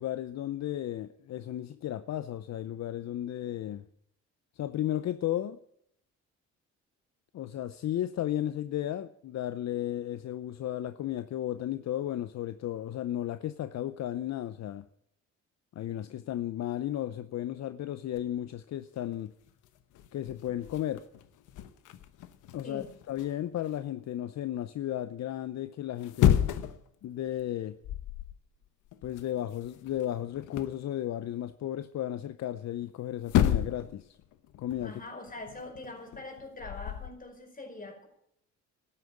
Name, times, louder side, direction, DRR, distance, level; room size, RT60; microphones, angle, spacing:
voice 1, 0.0-3.8 4.6-5.6 7.3-14.9 15.8-19.3 20.1-21.1 22.5-26.4 27.0-27.8 29.0-34.2 34.6-35.0, left 12 dB, 60° left, 0.7 m, -34 dB
sound 1, 18.2-18.5 19.1-19.2 19.5-23.8 25.9-26.9 27.2-27.5 27.8-28.4 28.6-30.8 32.8-32.9 33.2-34.0 34.2-37.1, left 10 dB, 90° left, 1.1 m, -31 dB
voice 2, 34.8-38.1, left 2 dB, 30° left, 4.9 m, -43 dB
12.5 x 9.8 x 8.3 m
cardioid pair, 90°, 30 cm